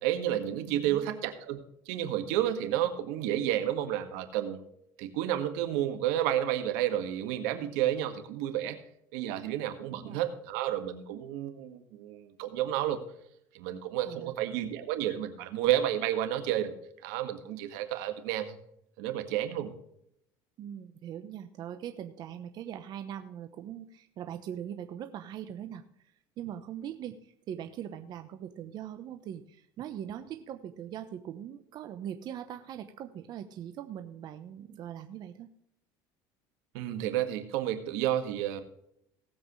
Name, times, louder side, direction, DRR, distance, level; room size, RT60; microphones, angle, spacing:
voice 1, 0.0-1.6 1.9-4.6 5.0-8.8 9.1-13.0 13.5-16.7 17.0-18.6 19.0-19.7 36.7-38.6, right 12 dB, 85° right, 7 dB, 1.8 m, -31 dB
voice 2, 0.7-1.1 9.9-10.2 14.1-14.3 20.6-35.5, right 10 dB, 45° right, 8 dB, 0.9 m, -41 dB
18.5 x 7.9 x 3.2 m, 0.74 s
cardioid pair, 140°, 10 cm